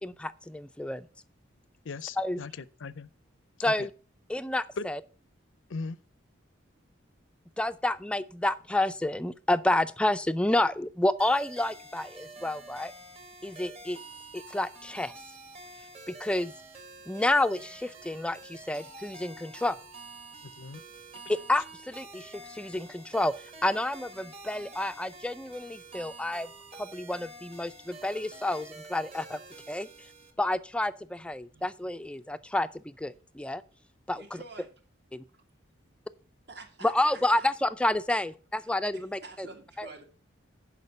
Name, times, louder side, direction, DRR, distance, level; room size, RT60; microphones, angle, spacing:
voice 1, 0.0-1.1 2.2-2.4 3.6-3.9 4.3-5.0 7.6-12.9 13.4-14.0 14.3-15.1 16.1-16.5 17.1-19.8 21.3-23.3 23.6-26.5 26.8-29.4 29.7-29.9 30.4-33.6 34.1-34.4 36.8-39.5 39.8-39.9, left 1 dB, 5° left, 0.4 m, -29 dB
voice 2, 1.8-3.1 3.6-3.9 4.8-4.9 5.7-6.0 20.6-20.8, left 4 dB, 75° left, 0.6 m, -38 dB
sound 1, 11.2-30.3, right 2 dB, 30° right, 1.6 m, -48 dB
voice 3, 34.1-34.7 36.5-37.5 38.6-40.0, right 3 dB, 55° right, 2.1 m, -48 dB
11.0 x 5.2 x 6.5 m
head